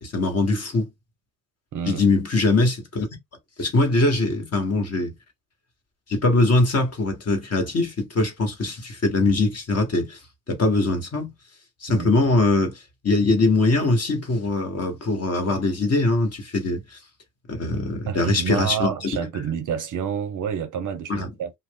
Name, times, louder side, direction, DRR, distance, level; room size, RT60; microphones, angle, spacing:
voice 1, 0.0-0.9 1.9-3.1 3.6-5.1 6.1-10.2 10.5-11.3 11.8-17.0 17.5-19.2 21.1-21.3, left 2 dB, 30° left, 1.3 m, -22 dB
voice 2, 18.1-21.5, right 8 dB, 40° right, 0.6 m, -29 dB
2.5 x 2.0 x 3.6 m
hypercardioid pair, 70°, 47 cm